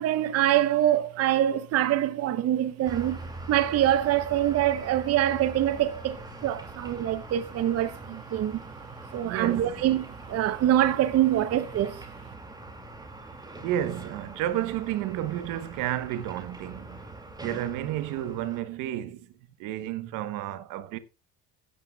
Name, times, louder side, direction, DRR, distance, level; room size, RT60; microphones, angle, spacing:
voice 1, 0.0-3.2 3.5-6.2 6.4-8.6 9.1-12.0, right 12 dB, 50° right, 0.8 m, -24 dB
sound 1, 2.8-18.6, right 2 dB, 10° right, 2.2 m, -43 dB
voice 2, 9.2-9.8 13.6-17.0 17.4-19.3 19.6-21.0, right 12 dB, 75° right, 1.1 m, -31 dB
16.5 x 8.8 x 2.3 m
supercardioid pair, 100°, 32 cm